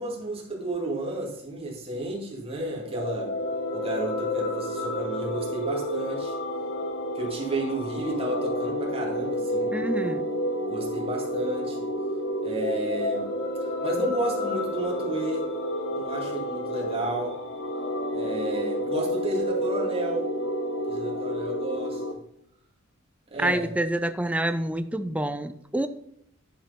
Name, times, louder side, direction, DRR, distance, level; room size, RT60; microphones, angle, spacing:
voice 1, 0.0-3.3 3.7-6.3 7.1-9.7 10.6-11.9 12.4-13.3 13.8-15.5 15.9-17.4 18.1-20.3 20.9-22.0 23.3-23.7, right 1 dB, 25° right, -3 dB, 2.3 m, -32 dB
sound 1, 2.8-22.1, equal, 55° left, 1.0 m, -30 dB
voice 2, 9.7-10.2 23.4-25.9, right 1 dB, 5° right, 10 dB, 0.4 m, -27 dB
10.5 x 4.4 x 5.1 m, 0.72 s
head